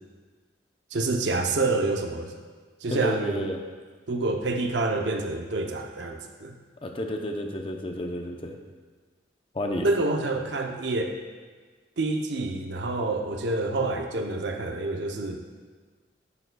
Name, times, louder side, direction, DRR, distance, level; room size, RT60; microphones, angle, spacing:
voice 1, 0.9-2.3 2.8-3.5 4.1-6.6 9.8-11.2 12.0-15.4, right 2 dB, 70° right, 4 dB, 0.6 m, -27 dB
voice 2, 2.9-3.6 6.8-8.6 9.5-9.9, left 1 dB, 30° left, 3 dB, 0.6 m, -31 dB
11.0 x 6.6 x 2.3 m, 1.5 s
head